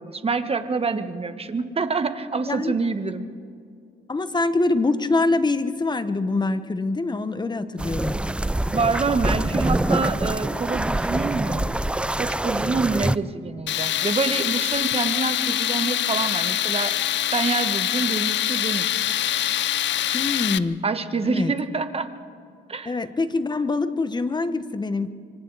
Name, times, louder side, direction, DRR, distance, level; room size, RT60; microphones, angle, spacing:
voice 1, 0.0-3.3 8.7-11.7 12.2-16.9 17.3-19.0 20.8-22.1 22.7-22.9, right 4 dB, 30° right, 9 dB, 1.4 m, -26 dB
voice 2, 4.1-8.2 20.1-20.8 21.2-21.5 22.8-25.1, left 3 dB, 20° left, 11 dB, 1.2 m, -24 dB
sound 1, 7.8-13.2, right 1 dB, 5° right, 0.4 m, -25 dB
Tools, 13.7-20.6, left 12 dB, 65° left, 0.6 m, -24 dB
26.0 x 25.0 x 4.1 m, 2.3 s
cardioid pair, 90°, 20 cm